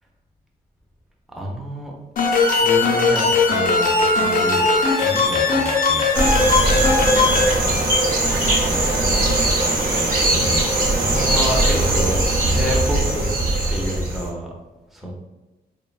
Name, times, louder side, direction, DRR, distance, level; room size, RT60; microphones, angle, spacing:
voice 1, 1.3-1.9 2.6-3.9 4.2-4.7 5.0-6.1 8.9-9.0 11.0-13.2 13.7-14.5 14.9-15.1, equal, ahead, -2 dB, 0.3 m, -28 dB
sound 1, 2.2-7.5, left 3 dB, 60° left, 0.5 m, -18 dB
sound 2, 6.1-14.3, right 1 dB, 60° right, 0.7 m, -20 dB
2.7 x 2.1 x 2.3 m, 1.1 s
wide cardioid pair, 180°, 16 cm